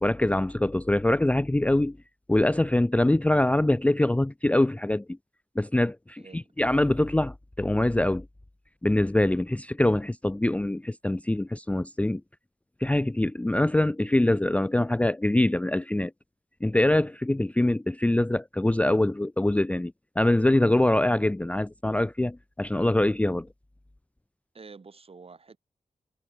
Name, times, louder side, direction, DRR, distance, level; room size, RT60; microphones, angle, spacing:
voice 1, 0.0-2.0 2.3-5.0 5.6-8.3 8.8-12.2 12.8-16.1 16.6-23.5, left 1 dB, 10° left, 0.5 m, -24 dB
voice 2, 6.2-6.5 24.5-25.6, right 4 dB, 50° right, 5.6 m, -48 dB
wide cardioid pair, 90°, 13 cm